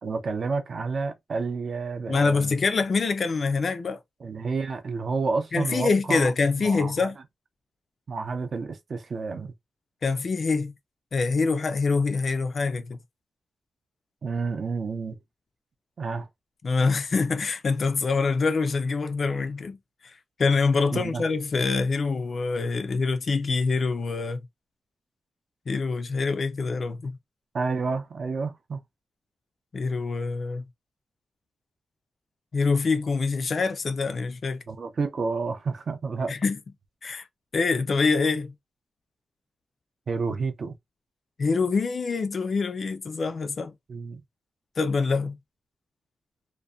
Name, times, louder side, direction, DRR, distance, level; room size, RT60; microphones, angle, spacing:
voice 1, 0.0-2.5 4.2-6.3 6.6-7.1 8.1-9.5 14.2-15.2 16.0-16.3 20.9-21.2 27.5-28.8 34.7-36.3 40.1-40.8 43.9-44.2, right 4 dB, 45° right, 0.4 m, -30 dB
voice 2, 2.1-4.0 5.5-7.2 10.0-10.7 11.1-13.0 16.6-19.8 20.0-20.1 20.4-24.5 25.7-27.2 29.7-30.6 32.5-34.6 36.3-36.6 37.0-37.3 37.5-38.5 41.4-43.7 44.8-45.4, left 4 dB, 40° left, 0.3 m, -25 dB
2.6 x 2.1 x 2.2 m
wide cardioid pair, 180°, 0 cm